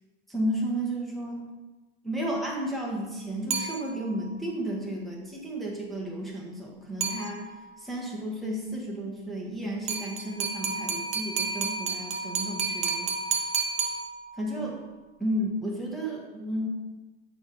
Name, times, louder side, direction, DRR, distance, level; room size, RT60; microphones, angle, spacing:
voice 1, 0.3-1.4 2.0-7.5 7.8-13.1 14.4-14.8 15.2-16.7, right 1 dB, ahead, -3 dB, 1.1 m, -32 dB
sound 1, 3.5-4.3 7.0-7.8 9.9-14.6, right 5 dB, 20° right, 0.7 m, -31 dB
7.1 x 3.5 x 4.8 m, 1.2 s
hypercardioid pair, 135°, 32 cm